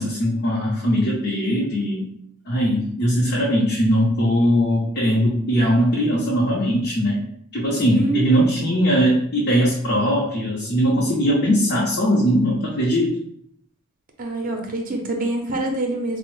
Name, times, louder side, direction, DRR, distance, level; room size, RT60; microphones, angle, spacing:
voice 1, 0.0-2.1 2.5-7.2 7.5-13.1, equal, 50° left, -5 dB, 0.6 m, -20 dB
voice 2, 7.9-8.3 14.2-16.2, right 2 dB, 40° right, 3 dB, 0.5 m, -25 dB
4.2 x 2.0 x 3.1 m, 0.70 s
head